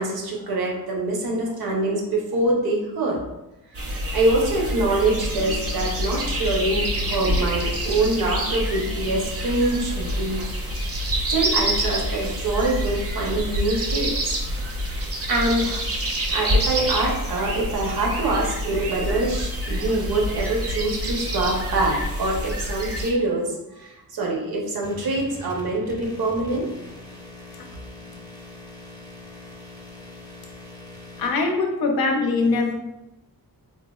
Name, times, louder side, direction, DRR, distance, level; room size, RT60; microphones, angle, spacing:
voice 1, 0.0-3.2 3.7-10.4 11.3-14.3 15.3-15.8 16.3-26.6, right 2 dB, 85° right, -2 dB, 0.7 m, -25 dB
sound 1, 3.7-23.1, equal, 40° right, 0.5 m, -27 dB
sound 2, 24.8-31.3, left 2 dB, 10° left, 0.5 m, -42 dB
voice 2, 31.2-32.7, left 3 dB, 85° left, 2 dB, 0.5 m, -22 dB
3.3 x 2.0 x 2.2 m, 0.95 s
wide cardioid pair, 105°, 36 cm